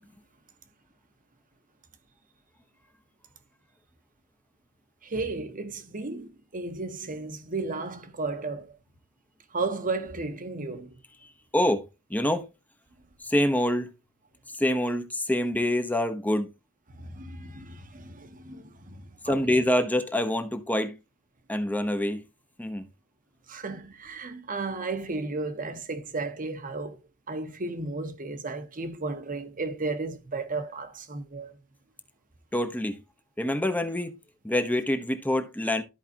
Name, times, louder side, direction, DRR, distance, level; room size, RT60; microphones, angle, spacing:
voice 1, 5.0-8.7 9.5-10.9 17.0-19.6 23.5-27.0 27.3-31.5, right 3 dB, 40° right, 1.1 m, -34 dB
voice 2, 11.2-11.8 12.1-12.5 13.2-13.9 14.5-16.5 19.2-21.0 21.5-22.2 22.6-22.9 32.5-33.0 33.4-34.1 34.4-35.8, left 1 dB, 5° left, 0.9 m, -26 dB
13.5 x 4.8 x 2.9 m
head